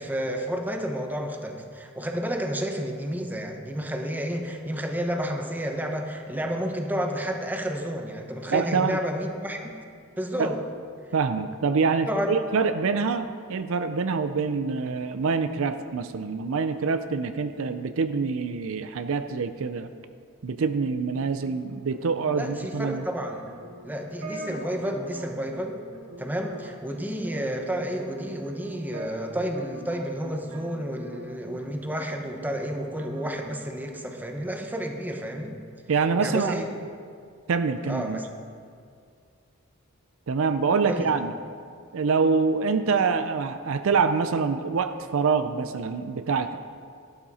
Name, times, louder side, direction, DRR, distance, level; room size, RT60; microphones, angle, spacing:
voice 1, 0.0-9.7 10.2-10.6 12.1-12.3 22.4-23.5 23.8-25.8 26.2-35.6 36.2-36.7 37.9-38.3 40.8-41.1, equal, 10° right, 3 dB, 1.0 m, -31 dB
voice 2, 8.5-9.0 10.4-10.5 11.1-19.9 20.4-23.1 35.9-36.6 37.5-38.2 40.3-41.3 41.9-46.5, right 5 dB, 65° right, 10 dB, 0.5 m, -25 dB
sound 1, 21.1-31.6 31.9-33.3, right 1 dB, 85° right, 2.4 m, -43 dB
12.0 x 12.0 x 4.2 m, 2.2 s
head